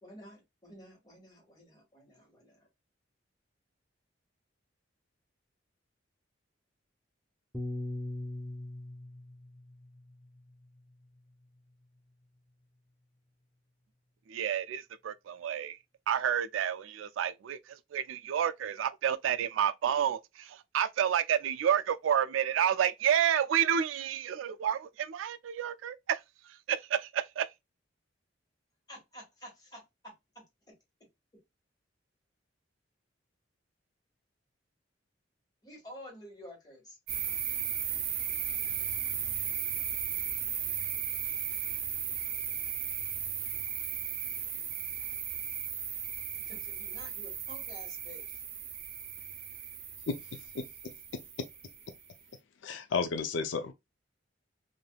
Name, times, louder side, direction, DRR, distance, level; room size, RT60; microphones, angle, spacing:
voice 1, 0.0-2.7 28.9-30.7 35.6-37.0 46.4-48.4, equal, 20° left, 1.6 m, -51 dB
Piano, 7.5-12.0, left 1 dB, ahead, 0.4 m, -42 dB
voice 2, 14.3-15.8 16.1-27.5, right 9 dB, 90° right, 0.3 m, -30 dB
sound 1, 37.1-52.1, right 8 dB, 50° right, 0.6 m, -36 dB
voice 3, 50.1-50.7 51.1-51.5 52.6-53.7, left 4 dB, 70° left, 0.4 m, -33 dB
3.3 x 2.6 x 2.2 m
head